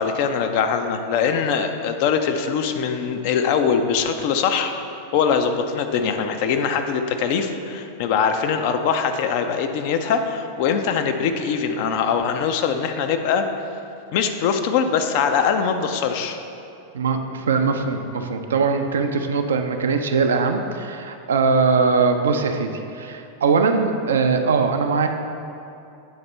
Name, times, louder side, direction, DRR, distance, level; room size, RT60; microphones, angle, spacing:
voice 1, 0.0-4.7 5.1-13.4 14.1-16.4, left 6 dB, 45° left, 7 dB, 0.4 m, -22 dB
voice 2, 16.9-25.1, right 4 dB, 65° right, 6 dB, 0.4 m, -21 dB
8.7 x 4.2 x 3.2 m, 2.6 s
figure-of-eight pair, 90°, 0 cm